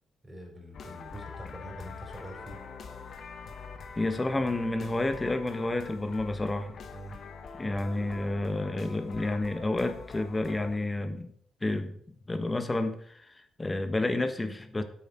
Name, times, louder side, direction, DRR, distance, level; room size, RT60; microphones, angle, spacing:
voice 1, 0.2-2.6 6.9-7.2, right 1 dB, 15° right, 1 dB, 4.5 m, -45 dB
sound 1, 0.7-10.8, left 5 dB, 55° left, 1.4 m, -44 dB
voice 2, 4.0-6.8 7.6-11.3 11.6-11.9 12.3-14.8, left 2 dB, 20° left, 9 dB, 1.3 m, -30 dB
10.0 x 8.2 x 4.5 m, 0.65 s
cardioid pair, 90°, 0 cm